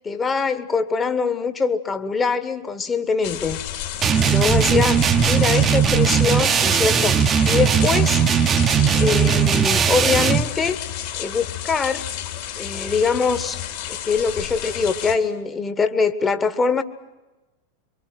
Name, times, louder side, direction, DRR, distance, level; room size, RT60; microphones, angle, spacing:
voice 1, 0.0-3.6 4.2-8.2 8.9-10.8 11.2-12.1 12.6-13.6 13.9-16.8, left 5 dB, 20° left, 10 dB, 1.4 m, -23 dB
sound 1, 3.2-15.2, left 11 dB, 50° left, 3.0 m, -31 dB
sound 2, 4.0-10.5, right 7 dB, 25° right, 0.9 m, -18 dB
25.5 x 24.0 x 7.6 m, 1.1 s
figure-of-eight pair, 90°, 0 cm